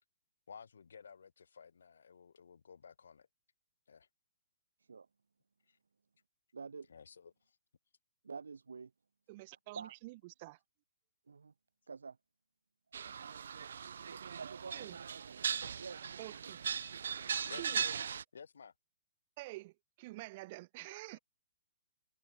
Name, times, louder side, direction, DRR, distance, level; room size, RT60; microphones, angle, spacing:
voice 1, 0.5-3.3 3.9-4.1 5.7-5.8 6.9-7.6 16.8-16.9 17.5-17.9 18.3-18.7 20.9-21.2, left 6 dB, 80° left, 6.3 m, -54 dB
voice 2, 6.5-6.9 8.2-8.9 9.8-9.9 11.3-11.5 11.9-12.2 14.0-15.4 15.8-16.5, right 5 dB, 90° right, 1.7 m, -48 dB
voice 3, 9.3-10.6 14.7-15.0 16.2-16.6 17.6-17.8 19.4-21.2, right 21 dB, 40° right, 3.8 m, -48 dB
sound 1, 12.9-18.2, right 7 dB, 75° right, 0.8 m, -39 dB
hypercardioid pair, 140°, 0 cm